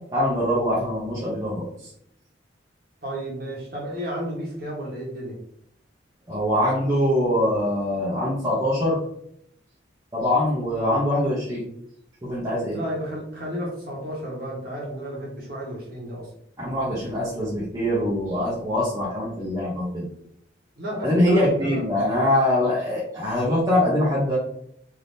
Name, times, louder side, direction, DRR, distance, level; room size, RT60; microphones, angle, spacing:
voice 1, 0.1-1.7 6.3-9.0 10.1-11.6 12.2-12.8 16.6-20.0 21.0-24.4, left 1 dB, 15° right, -8 dB, 0.8 m, -23 dB
voice 2, 3.0-5.4 12.7-16.3 20.8-21.8, equal, 50° right, -4 dB, 1.2 m, -32 dB
3.4 x 2.8 x 2.7 m, 0.71 s
head